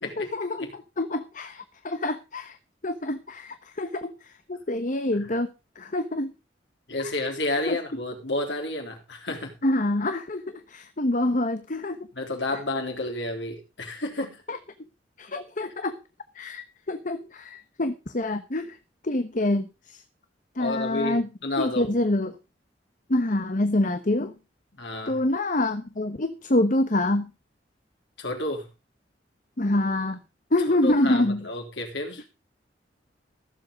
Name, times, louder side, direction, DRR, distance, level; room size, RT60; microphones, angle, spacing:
voice 1, 0.2-2.6 2.8-4.1 4.5-5.5 5.8-6.3 7.7-7.8 9.6-12.0 14.5-14.6 15.2-16.0 16.3-18.8 19.0-20.0 20.6-21.3 21.6-22.3 23.1-24.3 25.1-27.3 29.6-30.2 30.5-31.4, left 1 dB, 45° left, 10 dB, 1.1 m, -26 dB
voice 2, 6.9-9.6 12.1-14.4 20.6-21.9 24.8-25.2 28.2-28.7 30.7-32.2, left 2 dB, 85° left, 3 dB, 3.7 m, -31 dB
15.5 x 7.7 x 5.2 m, 0.29 s
head